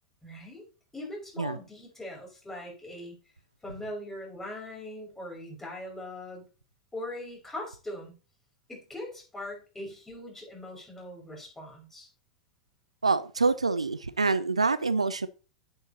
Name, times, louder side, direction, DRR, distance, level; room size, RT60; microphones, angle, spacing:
voice 1, 0.2-0.7 0.9-3.1 3.6-6.4 6.9-8.1 8.7-12.1, left 1 dB, 10° left, 5.8 m, -41 dB
voice 2, 13.0-15.3, right 4 dB, 85° right, 0.5 m, -26 dB
9.3 x 8.8 x 2.8 m
figure-of-eight pair, 90°, 3 cm